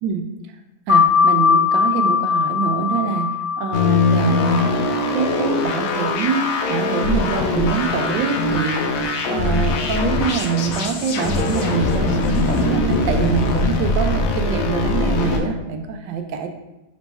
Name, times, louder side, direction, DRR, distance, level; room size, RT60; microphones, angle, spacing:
sound 1, 0.9-6.1, left 6 dB, 50° left, 0.6 m, -20 dB
voice 1, 0.9-4.8 5.1-8.8 9.2-16.5, right 6 dB, 80° right, 6 dB, 1.2 m, -24 dB
sound 2, 3.7-15.4, left 3 dB, 80° left, 0.7 m, -21 dB
3.4 x 3.0 x 4.0 m, 0.96 s
omnidirectional pair, 2.0 m